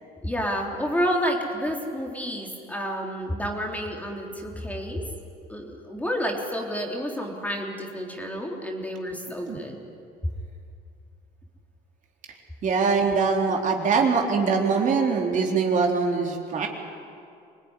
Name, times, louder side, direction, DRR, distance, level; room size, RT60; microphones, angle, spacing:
voice 1, 0.2-5.1 5.5-9.8, equal, 10° left, 0 dB, 3.6 m, -30 dB
voice 2, 12.6-16.7, right 5 dB, 50° right, 0 dB, 3.8 m, -23 dB
25.5 x 19.5 x 10.0 m, 2.5 s
cardioid pair, 110°, 17 cm